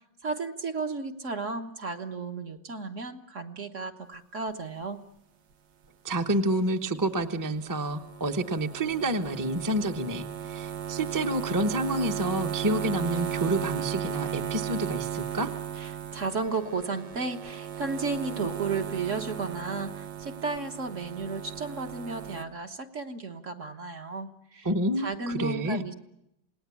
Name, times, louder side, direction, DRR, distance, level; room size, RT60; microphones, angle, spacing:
voice 1, 0.2-5.0 15.8-24.7 25.0-25.9, right 4 dB, 45° right, 5 dB, 1.5 m, -33 dB
voice 2, 6.0-15.5 24.6-25.8, right 1 dB, 15° right, 5 dB, 0.9 m, -29 dB
sound 1, 7.6-22.4, right 10 dB, 75° right, 1.9 m, -36 dB
28.0 x 19.0 x 8.4 m, 0.82 s
omnidirectional pair, 2.0 m